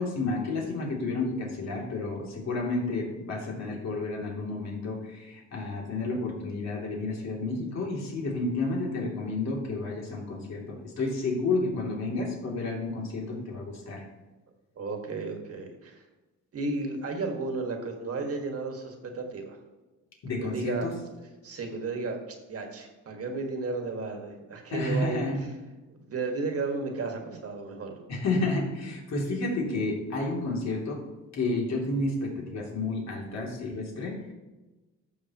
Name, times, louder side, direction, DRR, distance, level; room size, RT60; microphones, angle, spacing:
voice 1, 0.0-14.1 20.2-21.0 24.7-25.4 28.1-31.0 31.3-34.3, left 2 dB, 60° left, -2 dB, 2.9 m, -31 dB
voice 2, 14.8-16.1 16.5-19.6 20.4-20.9 21.4-25.5 25.9-28.0, right 3 dB, 50° right, 3 dB, 1.9 m, -33 dB
13.5 x 6.4 x 3.0 m, 1.1 s
cardioid pair, 90°, 30 cm